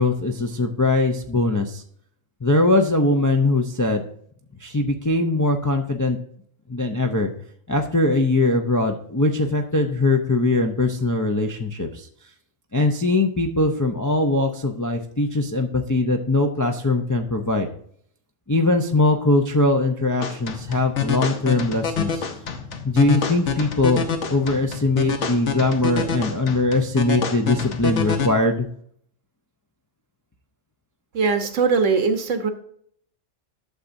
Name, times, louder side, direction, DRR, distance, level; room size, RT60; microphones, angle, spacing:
voice 1, 0.0-1.8 2.4-4.0 4.6-6.2 6.7-7.3 7.7-12.1 12.7-17.7 18.5-22.2 22.8-24.0 24.3-28.7, left 2 dB, 30° left, 3 dB, 0.3 m, -21 dB
sound 1, 20.2-28.3, left 6 dB, 70° left, 1.3 m, -27 dB
voice 2, 31.1-32.5, right 5 dB, 85° right, 7 dB, 1.4 m, -20 dB
11.5 x 7.0 x 2.6 m, 0.63 s
omnidirectional pair, 1.3 m